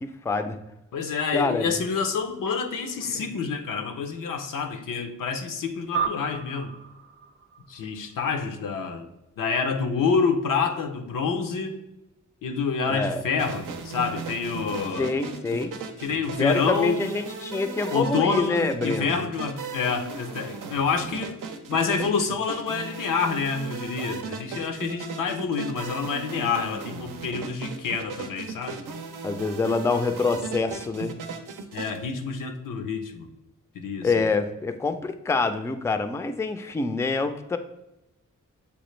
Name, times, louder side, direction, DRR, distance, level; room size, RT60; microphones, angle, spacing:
voice 1, 0.0-0.6 1.3-1.8 12.9-13.2 15.0-15.8 16.4-19.2 29.2-31.2 34.0-37.6, left 3 dB, 10° left, 9 dB, 0.3 m, -26 dB
voice 2, 0.9-6.7 7.7-9.1 9.4-11.8 12.4-15.1 16.0-17.1 17.9-21.4 21.7-28.8 31.7-33.3 33.7-34.1, left 5 dB, 90° left, 5 dB, 0.6 m, -27 dB
sound 1, 5.9-8.7, right 6 dB, 45° right, 0.5 m, -33 dB
sound 2, 13.4-32.0, right 5 dB, 85° right, 0.6 m, -36 dB
6.8 x 2.4 x 3.1 m, 0.92 s
cardioid pair, 65°, 31 cm